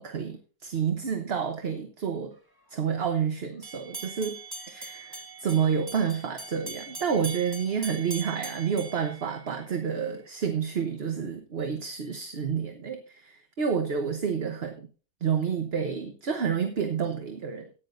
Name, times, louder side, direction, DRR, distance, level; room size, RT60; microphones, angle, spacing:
voice 1, 0.0-2.3 2.7-4.4 4.7-14.9 15.2-17.7, right 7 dB, 45° right, 6 dB, 1.1 m, -29 dB
sound 1, 3.6-9.9, right 3 dB, 15° right, 1.3 m, -41 dB
15.0 x 9.8 x 2.6 m, 0.35 s
omnidirectional pair, 1.8 m